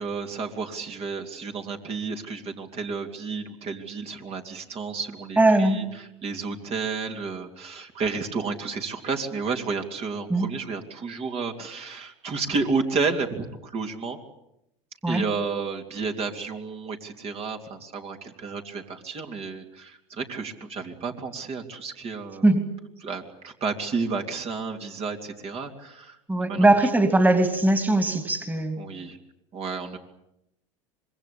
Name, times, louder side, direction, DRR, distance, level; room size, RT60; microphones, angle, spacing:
voice 1, 0.0-14.2 15.1-22.5 23.0-26.2 26.5-26.7 28.8-29.2 29.5-30.0, right 4 dB, 40° right, 4 dB, 3.2 m, -31 dB
voice 2, 5.4-5.8 10.3-10.5 15.0-15.2 22.4-22.7 26.3-28.8, right 2 dB, 10° right, 8 dB, 3.0 m, -20 dB
25.5 x 22.5 x 8.7 m, 0.82 s
hypercardioid pair, 100°, 16 cm